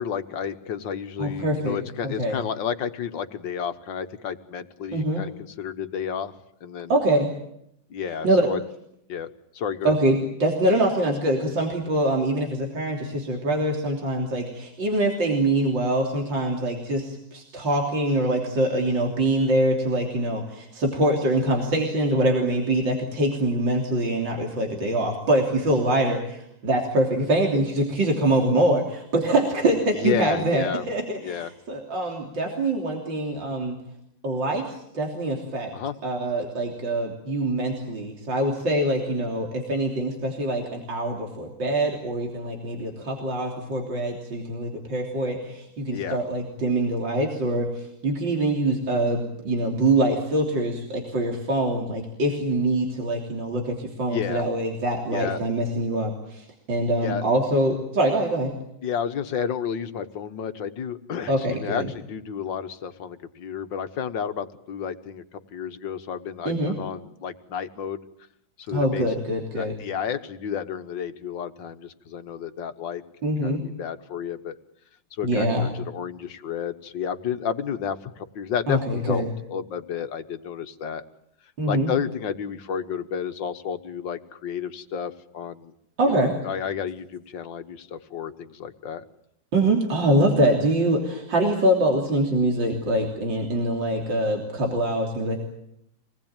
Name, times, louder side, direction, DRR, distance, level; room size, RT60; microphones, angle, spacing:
voice 1, 0.0-6.3 6.6-7.0 7.9-8.6 9.1-9.3 9.5-9.9 29.9-30.9 31.2-31.5 35.7-36.0 45.9-46.2 54.1-54.5 55.1-55.4 57.0-57.3 58.8-68.1 68.6-69.1 69.6-73.0 73.4-74.6 75.1-79.2 79.5-81.1 81.7-85.7 86.1-89.0, left 7 dB, 75° left, 10 dB, 2.0 m, -31 dB
voice 2, 1.2-1.8 2.0-2.4 4.9-5.2 6.9-7.3 8.2-8.5 9.8-33.8 34.2-35.7 36.0-58.5 61.3-61.9 66.5-66.7 68.7-69.7 73.2-73.6 75.2-75.7 78.7-79.3 81.6-81.9 86.0-86.3 89.5-95.4, right 1 dB, 75° right, 0 dB, 4.0 m, -24 dB
26.5 x 19.5 x 9.0 m, 0.76 s
omnidirectional pair, 2.0 m